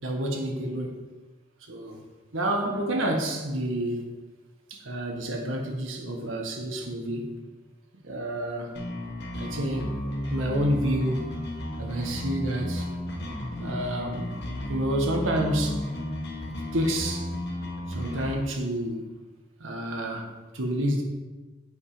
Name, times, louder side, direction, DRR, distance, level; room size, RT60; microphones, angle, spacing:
voice 1, 0.0-1.0 1.7-2.0 2.3-4.1 4.7-7.3 8.0-8.7 9.4-10.0 10.3-11.3 11.8-12.9 13.6-14.3 14.7-15.9 16.7-17.3 17.9-19.0 19.6-20.3 20.5-21.0, right 1 dB, 85° right, 2 dB, 1.6 m, -29 dB
sound 1, 8.7-18.3, left 1 dB, 60° left, 1.7 m, -33 dB
8.3 x 5.5 x 5.0 m, 1.2 s
head